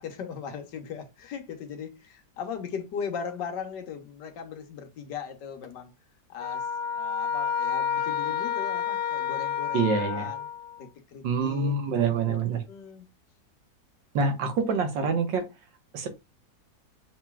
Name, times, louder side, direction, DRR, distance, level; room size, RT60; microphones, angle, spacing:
voice 1, 0.0-5.9 6.3-10.5 10.8-11.7 12.3-12.4 12.7-13.1, left 7 dB, 70° left, 1.5 m, -38 dB
sound 1, 6.4-10.8, left 8 dB, 90° left, 1.4 m, -30 dB
voice 2, 9.7-10.3 11.2-12.6 14.1-15.5 15.9-16.1, right 4 dB, 80° right, 1.8 m, -26 dB
7.1 x 3.0 x 2.3 m
omnidirectional pair, 2.0 m